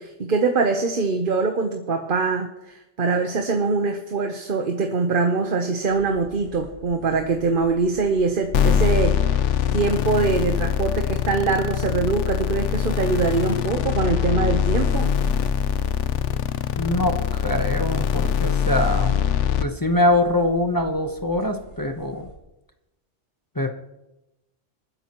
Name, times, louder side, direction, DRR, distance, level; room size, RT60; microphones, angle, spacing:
voice 1, 0.0-9.2 9.7-15.1, right 4 dB, 50° right, 4 dB, 1.1 m, -23 dB
sound 1, 5.9-22.3, left 1 dB, 60° left, 4.5 m, -44 dB
sound 2, 8.5-19.6, left 8 dB, 80° left, 1.1 m, -22 dB
voice 2, 16.8-19.2 19.6-22.3 23.5-23.7, left 1 dB, 20° left, 4 dB, 0.9 m, -23 dB
26.5 x 10.0 x 3.0 m, 0.96 s
omnidirectional pair, 1.2 m